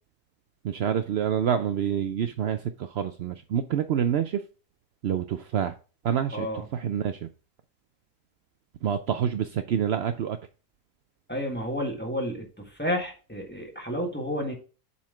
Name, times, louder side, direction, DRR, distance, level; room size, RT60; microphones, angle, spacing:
voice 1, 0.6-4.4 5.0-5.7 6.0-6.5 6.7-7.3 8.8-10.4, right 9 dB, 80° right, 9 dB, 0.5 m, -27 dB
voice 2, 6.3-6.6 11.3-14.5, equal, 5° left, 0 dB, 1.5 m, -31 dB
7.3 x 4.2 x 4.9 m, 0.36 s
omnidirectional pair, 1.6 m